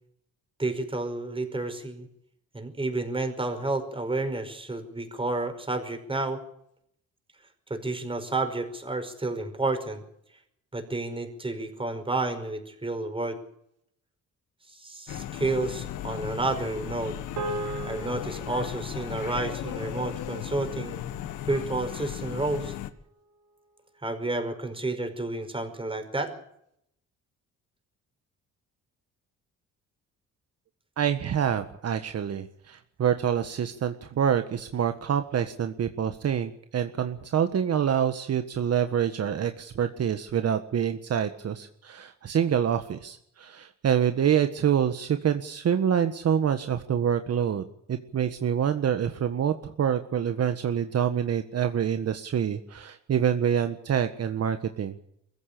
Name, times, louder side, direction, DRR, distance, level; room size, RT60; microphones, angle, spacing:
voice 1, 0.6-2.1 2.5-6.4 7.7-10.0 10.7-13.4 14.7-17.2 17.8-21.0 21.5-22.7 24.0-26.3, right 2 dB, 15° right, 7 dB, 5.3 m, -30 dB
sound 1, 15.1-22.9, left 11 dB, 90° left, 1.6 m, -36 dB
sound 2, 17.4-21.9, right 3 dB, 80° right, 4.3 m, -39 dB
voice 2, 31.0-54.9, right 8 dB, 55° right, 8 dB, 1.6 m, -26 dB
23.0 x 15.5 x 8.5 m, 0.75 s
cardioid pair, 90°, 30 cm